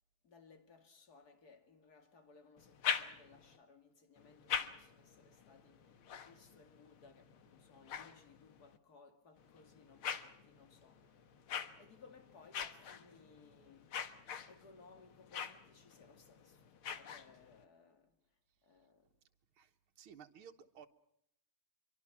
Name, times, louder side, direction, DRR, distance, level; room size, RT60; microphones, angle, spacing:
voice 1, 0.2-14.2 14.5-19.1, left 4 dB, 50° left, 2.7 m, -63 dB
sound 1, 2.6-3.6 4.2-8.8 9.4-17.6, left 8 dB, 85° left, 2.2 m, -44 dB
voice 2, 19.6-20.9, right 7 dB, 85° right, 2.1 m, -56 dB
26.0 x 24.0 x 6.0 m
omnidirectional pair, 2.3 m